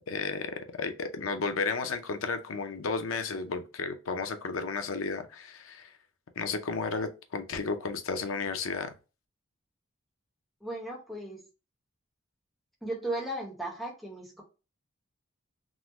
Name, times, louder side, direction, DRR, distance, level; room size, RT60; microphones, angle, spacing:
voice 1, 0.1-5.9 6.4-8.9, left 4 dB, 90° left, 0.6 m, -33 dB
voice 2, 10.6-11.4 12.8-14.4, right 1 dB, ahead, 0.9 m, -36 dB
3.6 x 2.0 x 2.9 m
head